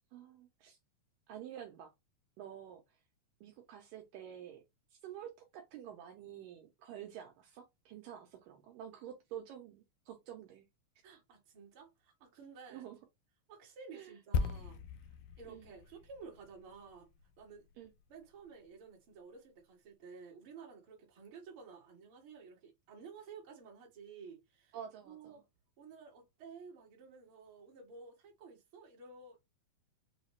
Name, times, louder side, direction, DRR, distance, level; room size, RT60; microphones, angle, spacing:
voice 1, 0.1-0.8 1.3-1.9 2.4-3.0 3.4-4.6 4.9-10.7 12.7-13.0 13.9-14.2 15.5-15.7 17.8-17.9 24.7-25.4, right 10 dB, 75° right, 2.2 m, -49 dB
voice 2, 11.0-12.8 13.5-14.8 15.4-17.1 17.4-17.7 18.1-24.8 25.0-25.4 25.8-29.4, right 5 dB, 45° right, 1.8 m, -53 dB
sound 1, 14.3-18.0 18.3-18.5, left 5 dB, 80° left, 2.1 m, -39 dB
5.6 x 2.4 x 3.1 m
omnidirectional pair, 4.2 m